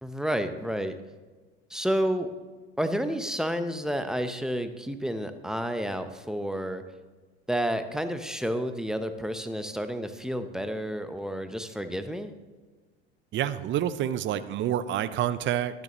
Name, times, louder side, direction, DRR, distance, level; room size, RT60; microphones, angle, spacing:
voice 1, 0.0-1.0 1.7-2.3 2.8-6.8 7.5-12.3, equal, ahead, 8 dB, 0.8 m, -30 dB
voice 2, 13.3-15.8, right 11 dB, 35° right, 14 dB, 0.6 m, -28 dB
12.0 x 9.8 x 3.1 m, 1.3 s
hypercardioid pair, 75°, 33 cm